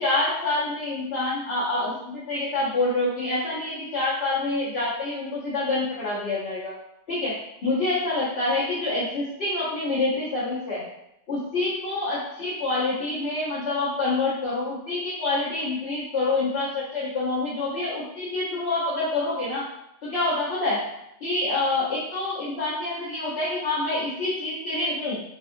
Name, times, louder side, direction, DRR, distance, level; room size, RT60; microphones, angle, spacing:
voice 1, 0.0-6.7 7.1-7.3 7.6-10.8 11.3-19.6 20.0-20.8 21.2-25.2, left 2 dB, 60° left, -11 dB, 1.2 m, -27 dB
3.5 x 2.3 x 2.6 m, 0.82 s
omnidirectional pair, 1.2 m